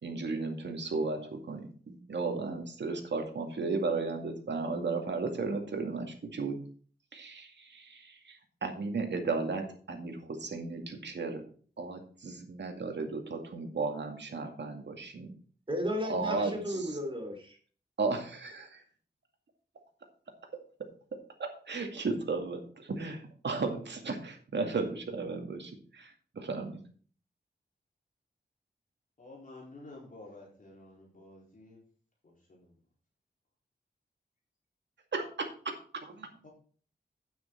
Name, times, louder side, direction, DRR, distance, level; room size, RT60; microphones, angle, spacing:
voice 1, 0.0-6.6 7.1-11.4 11.8-15.3 16.1-16.9 18.0-18.8 21.4-26.8 35.1-35.7 36.0-36.3, right 3 dB, 80° right, 4 dB, 2.3 m, -35 dB
voice 2, 15.7-17.6, equal, 30° right, 2 dB, 3.1 m, -34 dB
voice 3, 29.2-31.8 32.2-32.8 36.4-36.5, left 2 dB, 50° left, -3 dB, 4.2 m, -51 dB
9.3 x 9.2 x 4.6 m, 0.43 s
wide cardioid pair, 125°, 18 cm